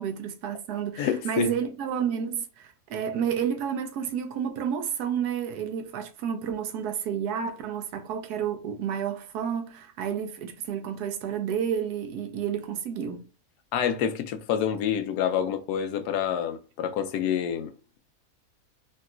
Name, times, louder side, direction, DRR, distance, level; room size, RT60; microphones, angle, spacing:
voice 1, 0.0-13.2, right 8 dB, 90° right, 1.2 m, -30 dB
voice 2, 1.0-1.5 13.7-17.7, left 8 dB, 85° left, 1.1 m, -27 dB
3.8 x 2.3 x 2.4 m
omnidirectional pair, 1.6 m